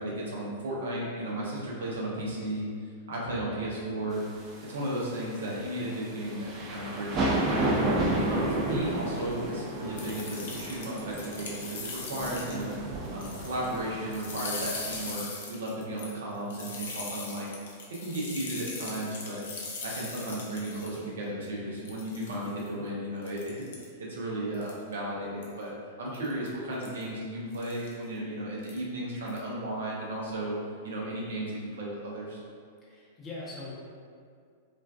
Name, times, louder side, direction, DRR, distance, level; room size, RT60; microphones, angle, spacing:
voice 1, 0.0-2.7 3.1-4.2 4.6-7.7 8.2-12.8 13.1-17.5 18.0-19.4 19.8-23.5 24.0-25.7 26.0-30.6 30.8-32.4, right 1 dB, 75° right, -5 dB, 0.6 m, -34 dB
sound 1, 4.2-15.1, right 1 dB, 35° right, 0.4 m, -32 dB
sound 2, 10.0-12.7 13.0-13.8 14.1-21.0 21.4-21.5 21.8-22.7 23.2-23.8 24.5-24.9 25.4-25.6 26.1-26.5 26.8-27.0 27.5-27.9 28.6-28.8 29.2-29.4, left 4 dB, 70° left, 0.5 m, -40 dB
voice 2, 32.8-33.7, left 2 dB, 25° left, -6 dB, 0.7 m, -41 dB
2.4 x 2.2 x 2.3 m, 2.2 s
hypercardioid pair, 105°, 0 cm